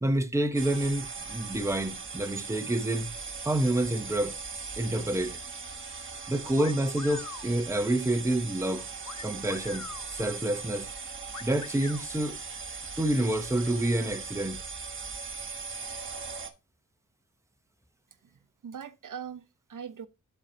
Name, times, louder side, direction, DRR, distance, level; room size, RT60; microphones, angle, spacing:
voice 1, 0.0-3.1 3.4-4.3 4.8-5.4 6.3-8.9 9.2-10.9 11.4-12.4 13.0-14.6, right 1 dB, 10° right, 0.8 m, -28 dB
sound 1, 0.5-16.5, right 4 dB, 35° right, 1.2 m, -39 dB
sound 2, 6.5-7.5 9.0-10.1 11.3-12.0, left 7 dB, 55° left, 0.8 m, -43 dB
voice 2, 18.2-20.1, right 7 dB, 65° right, 0.7 m, -42 dB
12.5 x 4.5 x 2.8 m
wide cardioid pair, 170°, 33 cm